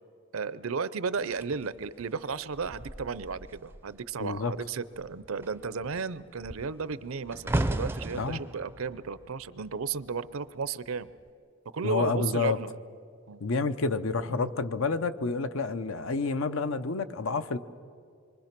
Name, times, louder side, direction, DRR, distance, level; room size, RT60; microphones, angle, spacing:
voice 1, 0.3-11.1 11.7-12.7 13.3-13.4 14.3-14.5, right 5 dB, 70° right, 16 dB, 0.6 m, -34 dB
sound 1, 1.2-4.0 4.3-4.6 5.0-10.3 11.0-11.3, right 1 dB, 10° right, 0.5 m, -36 dB
voice 2, 4.2-4.5 8.2-8.4 11.8-12.6 13.4-17.6, left 4 dB, 65° left, 12 dB, 0.7 m, -29 dB
26.5 x 23.0 x 6.0 m, 2.4 s
head